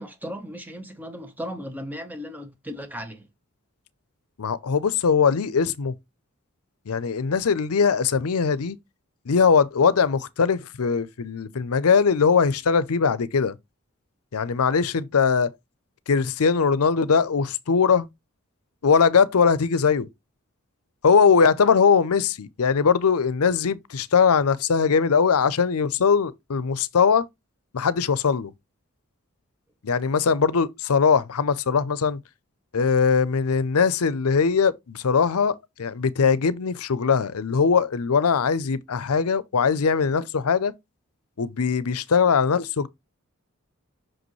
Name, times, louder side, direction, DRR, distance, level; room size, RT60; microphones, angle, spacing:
voice 1, 0.0-3.2, equal, 10° right, 1.0 m, -36 dB
voice 2, 4.4-5.9 6.9-8.8 9.3-13.5 14.3-15.5 16.1-18.1 18.8-20.1 21.0-27.2 27.7-28.5 29.8-32.2 32.7-40.7 41.4-42.9, left 5 dB, 90° left, 0.6 m, -21 dB
5.9 x 5.2 x 3.1 m
head